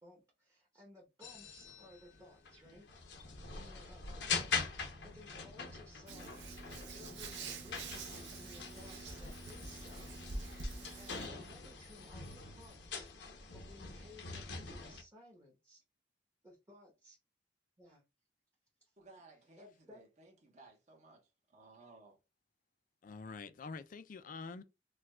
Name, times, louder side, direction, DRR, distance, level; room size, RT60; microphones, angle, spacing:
voice 1, 0.0-3.2 3.5-15.8 16.4-17.2 17.8-18.0 18.8-18.9 19.6-20.0, left 1 dB, 20° right, 1.0 m, -59 dB
sound 1, 1.2-15.0, left 5 dB, 80° left, 0.8 m, -44 dB
Hands, 6.1-11.3, right 3 dB, 75° right, 0.7 m, -46 dB
voice 2, 19.0-21.2 21.5-22.2, right 3 dB, 45° right, 1.1 m, -59 dB
voice 3, 23.0-24.6, left 4 dB, 50° left, 0.4 m, -46 dB
4.7 x 2.3 x 2.2 m
head